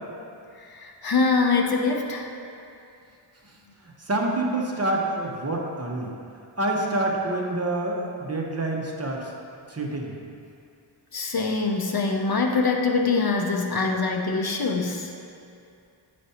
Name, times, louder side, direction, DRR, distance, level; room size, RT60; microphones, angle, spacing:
voice 1, 0.6-2.3 11.1-15.1, left 4 dB, 50° left, 2 dB, 0.6 m, -24 dB
voice 2, 3.8-6.1 6.6-9.3 9.7-10.2, right 2 dB, 30° right, -1 dB, 0.8 m, -27 dB
9.1 x 5.0 x 2.8 m, 2.5 s
wide cardioid pair, 90°, 49 cm